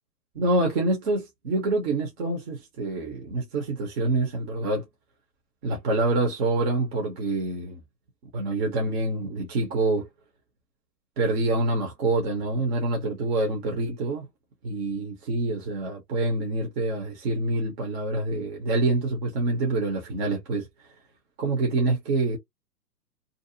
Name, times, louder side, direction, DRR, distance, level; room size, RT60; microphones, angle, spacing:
voice 1, 0.3-4.9 5.6-7.8 8.3-10.1 11.2-14.3 14.6-20.7 21.4-22.4, right 2 dB, 40° right, 0.9 m, -26 dB
2.6 x 2.0 x 2.6 m
hypercardioid pair, 145°, 48 cm